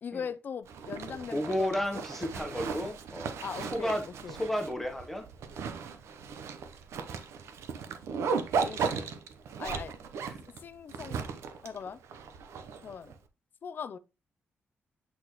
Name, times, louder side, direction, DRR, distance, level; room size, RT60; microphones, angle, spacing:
voice 1, 0.0-2.0 3.4-4.0 4.2-4.4 8.5-9.2 9.6-9.9 10.6-11.3 11.6-12.0 12.8-13.1 13.6-14.0, left 7 dB, 45° left, 0.5 m, -40 dB
Zipper (clothing), 0.7-13.1, right 5 dB, 90° right, 0.8 m, -36 dB
voice 2, 1.3-3.3 3.6-5.3 10.3-10.4, equal, 5° left, 1.0 m, -33 dB
Alarm, 9.1-10.0, right 2 dB, 35° right, 4.3 m, -55 dB
7.9 x 4.2 x 3.0 m
wide cardioid pair, 150°, 5 cm